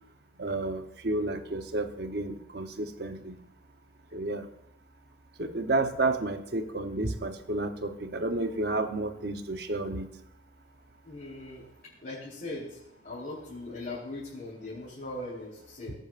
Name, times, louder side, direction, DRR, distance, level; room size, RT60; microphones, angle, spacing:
voice 1, 0.4-3.4 4.1-4.5 5.4-10.1, right 2 dB, 55° right, 7 dB, 0.9 m, -31 dB
voice 2, 11.0-11.6 12.0-15.9, left 2 dB, 45° left, -9 dB, 4.1 m, -40 dB
18.5 x 8.1 x 2.5 m, 0.78 s
head